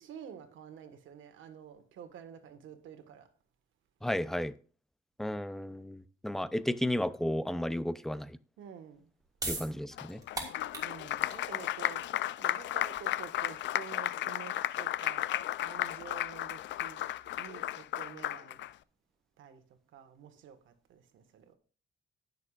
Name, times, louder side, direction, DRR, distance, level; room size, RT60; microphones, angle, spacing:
voice 1, 0.0-3.3 8.6-9.1 10.8-12.1 12.4-17.1 17.3-18.6 19.4-19.6 19.9-21.6, right 8 dB, 80° right, 1.5 m, -49 dB
voice 2, 4.0-4.5 5.2-8.3 9.5-10.2, left 1 dB, ahead, 0.5 m, -33 dB
sound 1, 8.9-15.7, right 2 dB, 20° right, 2.7 m, -43 dB
Applause, 10.0-18.7, left 13 dB, 65° left, 0.4 m, -34 dB
18.0 x 6.7 x 2.4 m
cardioid pair, 90°, 20 cm